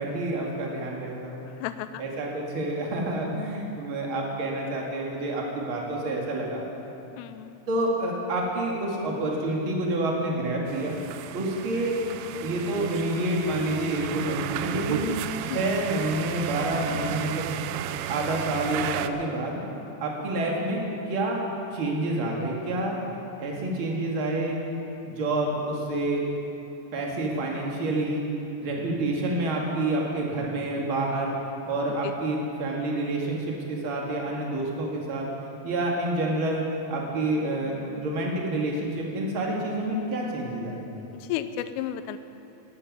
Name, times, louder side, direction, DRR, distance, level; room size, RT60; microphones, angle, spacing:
voice 1, 0.0-1.4 2.0-6.6 7.7-10.9 11.3-12.0 12.4-15.1 15.4-17.5 18.1-19.6 20.0-20.8 21.1-21.4 21.7-23.0 23.4-24.6 25.0-26.3 26.9-28.2 28.6-31.3 31.6-35.3 35.6-40.9, right 1 dB, 50° right, -2 dB, 1.6 m, -28 dB
voice 2, 1.6-2.0 7.2-7.6 15.4-15.6 32.0-32.1 41.1-42.2, left 11 dB, 85° left, 11 dB, 3.2 m, -33 dB
sound 1, 10.7-19.1, right 11 dB, 90° right, 3.2 m, -33 dB
14.5 x 9.6 x 9.6 m, 2.8 s
omnidirectional pair, 5.7 m